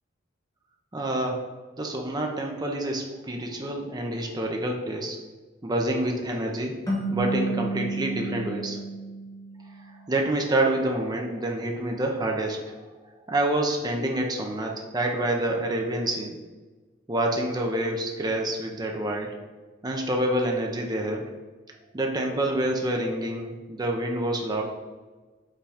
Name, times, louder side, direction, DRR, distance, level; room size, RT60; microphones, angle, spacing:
voice 1, 0.9-1.4 1.8-5.2 5.6-6.7 7.1-8.8 10.1-12.8 13.3-16.3 17.1-19.3 19.8-21.3 21.9-24.6, right 1 dB, 20° right, 1 dB, 0.7 m, -27 dB
sound 1, 6.9-10.0, right 2 dB, 15° left, 1.4 m, -31 dB
5.7 x 3.8 x 5.0 m, 1.3 s
head